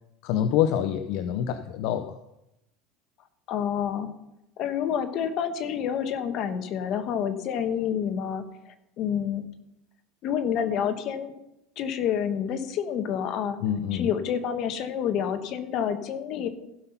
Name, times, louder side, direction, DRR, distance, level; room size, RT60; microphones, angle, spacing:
voice 1, 0.2-2.2 13.6-14.1, left 10 dB, 65° left, 10 dB, 0.6 m, -26 dB
voice 2, 3.5-4.1 4.6-8.4 9.0-9.4 10.2-11.3 11.8-13.6 13.9-16.5, left 8 dB, 50° left, 9 dB, 1.2 m, -28 dB
15.5 x 5.7 x 5.8 m, 0.88 s
supercardioid pair, 135°, 0 cm